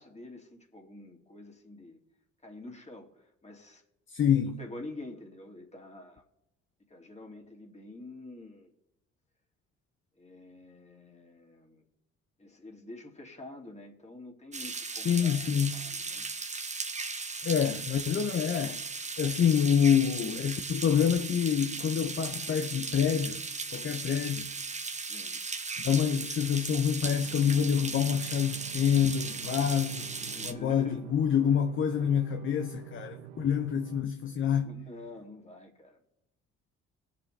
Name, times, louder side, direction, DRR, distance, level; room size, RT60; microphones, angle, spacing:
voice 1, 0.0-2.0 2.4-3.1 3.4-3.8 4.4-6.2 6.9-8.7 10.2-11.8 12.4-16.3 25.1-25.4 30.2-31.1 34.2-36.0, left 2 dB, 20° left, 2.6 m, -47 dB
voice 2, 4.1-4.6 15.0-15.8 17.4-18.8 19.2-23.4 23.7-24.5 25.8-30.1 30.4-34.7, left 8 dB, 40° left, 0.7 m, -27 dB
sound 1, 14.5-30.5, right 4 dB, 25° right, 1.1 m, -37 dB
sound 2, 27.0-34.1, right 9 dB, 80° right, 0.8 m, -46 dB
19.0 x 7.0 x 3.3 m
supercardioid pair, 60°, 30 cm